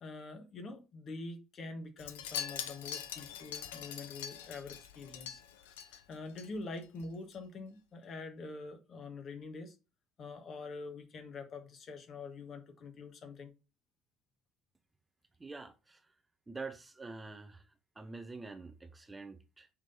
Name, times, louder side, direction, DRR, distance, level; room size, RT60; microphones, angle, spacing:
voice 1, 0.0-9.7 10.2-13.5, left 3 dB, 45° left, 1.5 m, -45 dB
Wind chime, 2.0-6.5 6.8-7.1 7.3-7.4, left 9 dB, 75° left, 0.6 m, -43 dB
voice 2, 15.4-16.0 16.5-17.6 18.0-19.7, right 3 dB, 20° right, 0.9 m, -46 dB
6.4 x 3.8 x 3.9 m
figure-of-eight pair, 55°, 0 cm